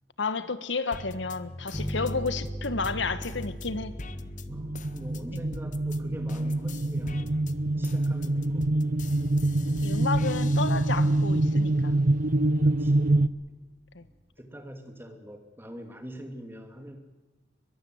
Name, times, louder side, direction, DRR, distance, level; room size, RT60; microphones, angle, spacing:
voice 1, 0.2-3.9 5.3-5.4 7.7-7.9 9.7-11.9 13.9-14.0, left 4 dB, 85° left, 13 dB, 1.3 m, -31 dB
sound 1, 0.9-6.0 6.3-11.5 12.0-12.9, left 3 dB, 45° left, 1.0 m, -43 dB
sound 2, 1.7-11.0, equal, 20° left, 2.3 m, -41 dB
voice 2, 4.4-7.4 7.8-8.9 12.6-13.2 13.5-13.6 14.0-14.1 14.4-17.0, equal, 15° right, 5 dB, 2.8 m, -44 dB
sound 3, 4.5-13.3, right 2 dB, 55° right, 0.8 m, -25 dB
22.5 x 22.0 x 7.9 m, 1.1 s
head